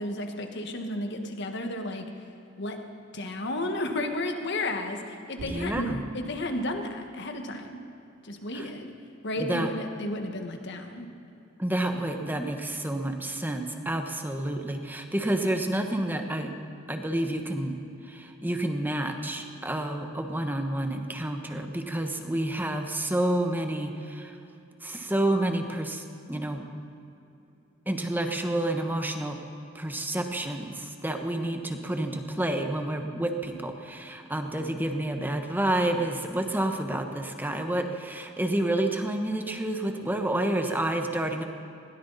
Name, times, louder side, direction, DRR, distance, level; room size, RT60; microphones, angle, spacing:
voice 1, 0.0-2.1 2.6-2.8 3.1-7.8 8.2-8.9 9.2-11.1, left 1 dB, 60° left, 4 dB, 1.6 m, -32 dB
voice 2, 5.4-6.0 8.5-8.7 9.4-9.7 11.6-16.5 16.9-17.7 18.1-24.4 24.8-26.7 27.9-29.4 29.7-41.4, right 1 dB, 10° right, 4 dB, 1.1 m, -29 dB
sound 1, 5.4-5.9, equal, 85° right, 2.9 m, -38 dB
20.5 x 17.0 x 4.1 m, 2.8 s
head